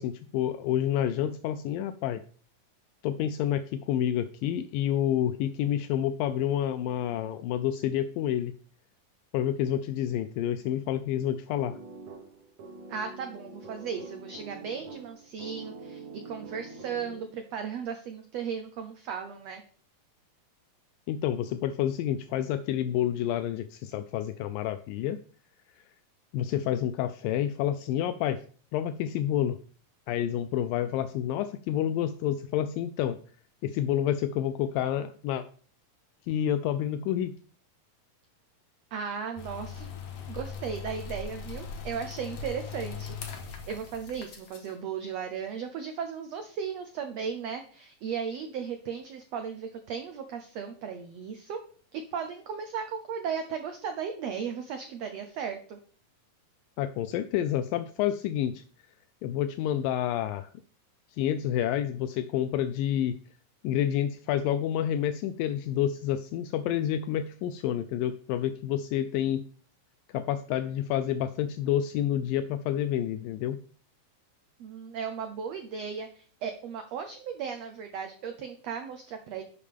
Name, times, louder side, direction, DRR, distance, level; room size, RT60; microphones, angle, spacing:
voice 1, 0.0-2.2 3.0-8.5 9.3-11.8 21.1-25.2 26.3-28.4 28.7-29.6 30.1-33.2 33.6-35.4 36.3-37.3 56.8-58.6 59.2-60.5 61.2-63.1 63.6-69.4 70.1-73.6, left 11 dB, 80° left, 11 dB, 2.2 m, -29 dB
sound 1, 11.5-17.5, right 3 dB, 60° right, 2.4 m, -45 dB
voice 2, 12.9-19.6 38.9-39.9 40.3-51.6 51.9-55.8 74.6-79.4, right 7 dB, 85° right, 6 dB, 1.4 m, -36 dB
sound 2, 39.4-44.7, left 5 dB, 55° left, 1.9 m, -40 dB
11.0 x 6.8 x 3.6 m, 0.43 s
omnidirectional pair, 4.1 m